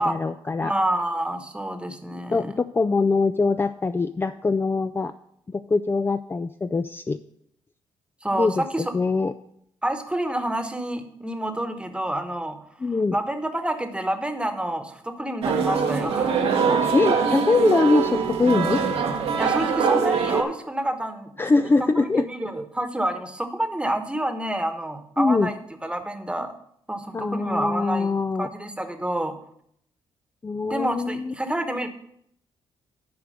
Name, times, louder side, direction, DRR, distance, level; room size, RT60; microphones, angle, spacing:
voice 1, 0.0-0.7 2.3-5.1 5.5-7.2 8.3-9.3 12.8-13.2 16.8-18.8 21.4-22.3 25.2-25.5 27.1-28.5 30.4-31.3, left 3 dB, 20° left, 9 dB, 0.4 m, -23 dB
voice 2, 0.6-2.5 8.2-8.9 9.8-12.6 13.1-16.3 19.4-21.3 21.8-26.5 26.9-29.4 30.6-31.9, right 1 dB, 10° right, 7 dB, 1.2 m, -28 dB
sound 1, 15.4-20.4, right 6 dB, 75° right, 1.2 m, -23 dB
10.0 x 4.8 x 6.5 m, 0.71 s
cardioid pair, 75°, 10 cm